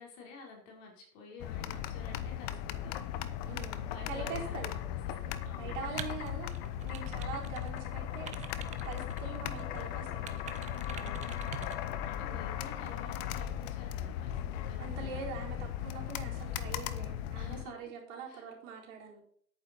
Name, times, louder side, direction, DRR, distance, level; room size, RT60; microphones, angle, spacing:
voice 1, 0.0-3.0 3.9-4.8 5.1-6.1 10.9-15.4 17.3-17.9 18.3-18.4, left 4 dB, 50° left, 0 dB, 4.6 m, -51 dB
sound 1, 1.4-17.6, left 10 dB, 30° left, 0.8 m, -37 dB
voice 2, 3.4-4.7 5.2-8.4 8.8-10.5 12.2-12.6 14.8-19.2, right 5 dB, 50° right, -1 dB, 4.3 m, -44 dB
sound 2, 6.0-7.8 8.1-9.8 10.3-11.8, right 9 dB, 15° right, 0.7 m, -46 dB
10.5 x 9.1 x 4.4 m, 0.64 s
hypercardioid pair, 115°, 48 cm